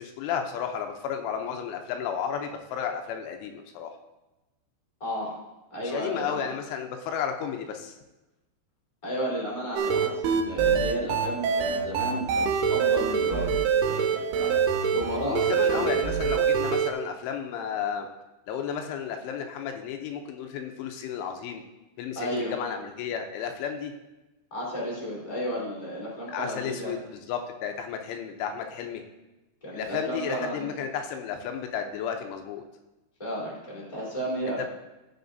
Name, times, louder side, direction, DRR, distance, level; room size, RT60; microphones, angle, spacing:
voice 1, 0.0-3.9 5.8-8.0 15.2-18.1 18.5-21.6 22.0-23.9 26.3-29.0 29.7-32.6, left 7 dB, 85° left, 5 dB, 3.1 m, -33 dB
voice 2, 5.0-5.3 5.7-6.5 9.0-14.6 14.9-15.9 22.1-22.5 24.5-27.0 29.6-30.7 33.2-34.7, equal, 10° left, -6 dB, 2.1 m, -33 dB
sound 1, 9.8-16.9, right 7 dB, 85° right, 2.3 m, -25 dB
16.0 x 5.8 x 2.6 m, 1.0 s
omnidirectional pair, 5.4 m